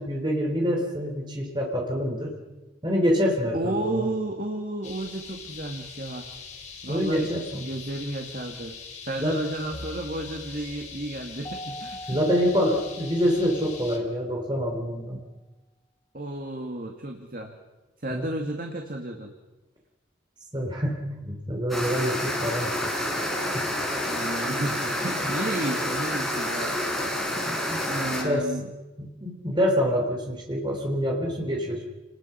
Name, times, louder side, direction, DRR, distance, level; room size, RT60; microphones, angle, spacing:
voice 1, 0.0-2.4 2.8-4.0 6.9-7.7 9.2-9.4 12.1-15.2 18.1-18.3 20.5-22.7 23.5-23.7 25.2-25.4 27.5-27.9 28.2-28.5 29.0-31.8, equal, 25° right, 0 dB, 3.6 m, -26 dB
voice 2, 3.5-6.3 6.8-7.3 7.6-12.2 16.1-17.5 18.0-19.3 24.1-26.8 27.9-28.6, right 1 dB, 50° right, 2 dB, 2.1 m, -32 dB
sound 1, 4.8-14.0, left 5 dB, 40° left, 3.5 m, -42 dB
sound 2, 9.7-14.4, equal, 20° left, 3.6 m, -43 dB
sound 3, 21.7-28.2, left 1 dB, ahead, 5.0 m, -28 dB
29.5 x 20.5 x 5.7 m, 1.1 s
head